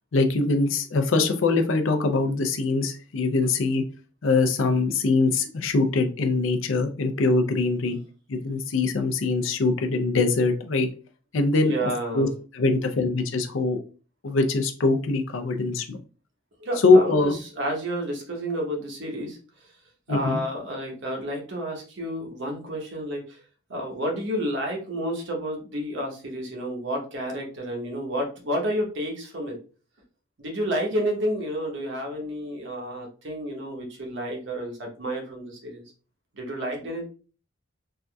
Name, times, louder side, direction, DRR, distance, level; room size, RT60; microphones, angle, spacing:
voice 1, 0.1-3.8 4.2-8.0 8.3-10.9 11.3-12.3 12.5-13.8 14.2-16.0 16.8-17.4 20.1-20.4, left 3 dB, 65° left, 6 dB, 0.5 m, -23 dB
voice 2, 11.6-12.3 16.6-19.4 20.1-23.2 23.7-29.6 30.4-35.8 36.4-37.1, equal, 60° right, 0 dB, 1.0 m, -30 dB
3.4 x 2.6 x 2.2 m, 0.37 s
head